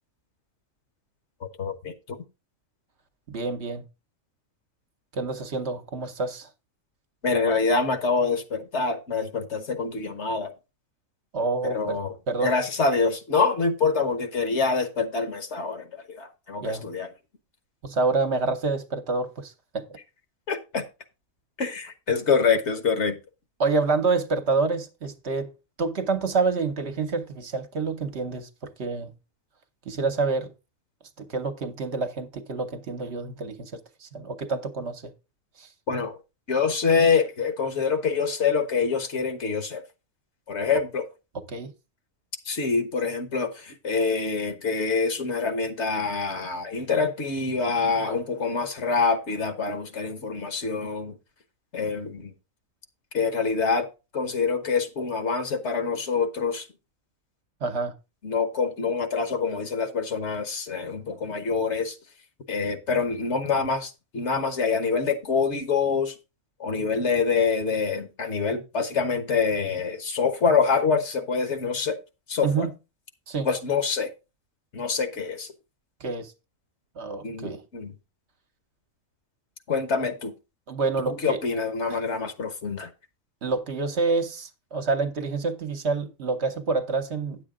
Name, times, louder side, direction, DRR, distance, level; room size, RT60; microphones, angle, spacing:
voice 1, 1.6-2.2 7.2-10.5 11.6-12.1 12.4-17.1 20.5-20.8 21.6-23.2 35.9-36.2 36.5-39.8 40.5-41.0 42.5-51.2 51.7-52.3 53.1-53.9 54.1-56.7 58.2-62.0 62.5-66.1 66.6-72.0 72.3-72.7 73.4-74.1 74.7-75.5 77.2-77.9 79.7-80.3 81.1-82.9, left 5 dB, 60° left, 1.4 m, -26 dB
voice 2, 3.3-3.8 5.1-6.5 11.3-12.0 12.3-12.5 16.6-16.8 17.8-20.0 23.6-25.5 25.8-29.1 29.9-30.5 31.2-33.7 34.0-35.0 35.6-35.7 41.5-41.7 57.6-57.9 72.4-72.7 73.3-73.5 76.0-76.3 77.0-77.6 80.7-81.4 81.9-82.0 83.4-87.4, right 4 dB, 55° right, 1.1 m, -27 dB
9.6 x 7.5 x 3.7 m
omnidirectional pair, 1.4 m